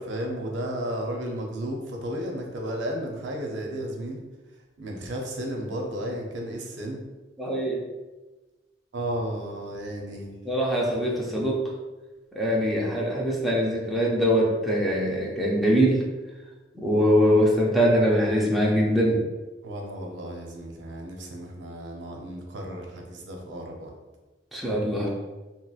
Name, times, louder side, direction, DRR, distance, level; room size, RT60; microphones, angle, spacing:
voice 1, 0.0-4.2 4.8-7.0 8.9-10.4 19.6-23.9, right 1 dB, 80° right, 0 dB, 0.6 m, -33 dB
voice 2, 7.4-7.8 10.5-11.6 12.4-16.1 16.7-19.2 24.5-25.1, equal, ahead, -4 dB, 0.5 m, -22 dB
2.9 x 2.9 x 2.3 m, 1.2 s
head